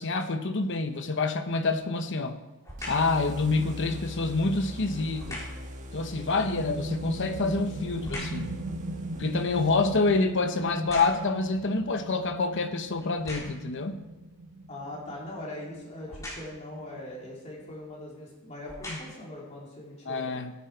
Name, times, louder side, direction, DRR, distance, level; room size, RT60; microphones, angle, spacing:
voice 1, 0.0-2.4 2.9-5.4 5.9-8.6 9.2-14.0 18.9-19.0 20.1-20.5, left 3 dB, 55° left, 7 dB, 1.0 m, -27 dB
sound 1, 2.6-3.2 5.2-5.7 7.1-8.5 9.0-11.5 12.1-12.2 13.0-13.7 16.1-16.7 17.7-17.8 18.5-19.3 19.9-20.0, left 1 dB, 15° left, 4.3 m, -42 dB
sound 2, 2.8-10.4, equal, 35° right, 1.4 m, -42 dB
sound 3, 6.2-17.5, right 2 dB, 85° right, 1.1 m, -39 dB
voice 2, 14.7-20.2, left 1 dB, 30° left, -4 dB, 3.2 m, -41 dB
17.0 x 9.9 x 4.6 m, 1.0 s
head